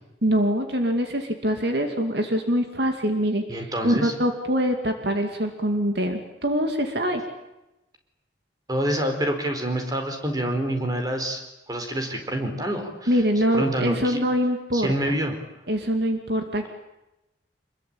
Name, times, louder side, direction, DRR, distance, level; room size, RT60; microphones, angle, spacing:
voice 1, 0.2-7.2 13.1-14.9 15.7-16.7, equal, 60° right, 5 dB, 2.6 m, -24 dB
voice 2, 3.5-4.1 8.7-11.4 11.7-13.2 13.5-14.2 14.7-15.4, right 1 dB, 20° right, 4 dB, 4.4 m, -27 dB
27.5 x 22.0 x 8.9 m, 0.96 s
head